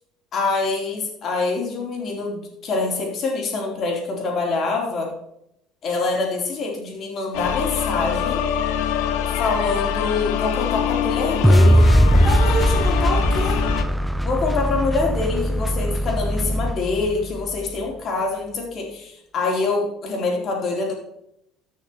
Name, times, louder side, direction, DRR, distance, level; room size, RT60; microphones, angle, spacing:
voice 1, 0.3-5.1 5.8-8.4 9.4-11.9 12.2-13.6 14.2-20.9, left 3 dB, 45° left, 0 dB, 3.7 m, -25 dB
sound 1, 7.3-13.8, left 9 dB, 85° left, 1.0 m, -24 dB
sound 2, 11.4-17.6, equal, 5° right, 0.3 m, -19 dB
14.0 x 6.5 x 4.3 m, 0.77 s
cardioid pair, 115°, 0 cm